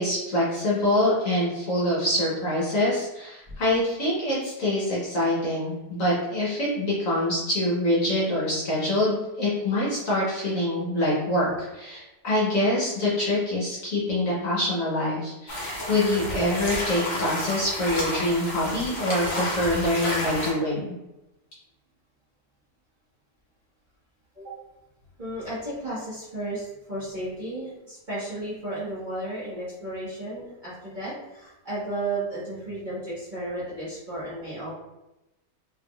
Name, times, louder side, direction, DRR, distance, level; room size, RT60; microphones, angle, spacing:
voice 1, 0.0-20.9, left 1 dB, 50° left, -7 dB, 1.3 m, -25 dB
sound 1, 15.5-20.5, equal, 35° left, 0.8 m, -30 dB
voice 2, 25.2-34.7, right 1 dB, 30° right, -10 dB, 1.3 m, -33 dB
3.7 x 3.5 x 2.3 m, 0.96 s
omnidirectional pair, 1.9 m